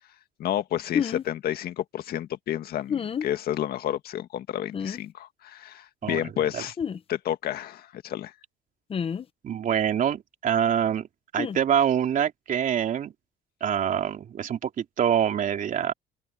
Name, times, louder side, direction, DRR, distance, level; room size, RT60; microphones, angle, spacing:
voice 1, 0.4-6.8 7.1-8.3, left 11 dB, 65° left, 1.9 m, -30 dB
sound 1, 0.9-1.2 2.9-3.3 4.7-5.0 6.8-7.0 8.9-9.3 11.4-11.6, left 7 dB, 35° left, 0.8 m, -28 dB
voice 2, 9.4-11.1 11.3-13.1 13.6-15.9, right 9 dB, 50° right, 3.3 m, -25 dB
open air
cardioid pair, 110°, 17 cm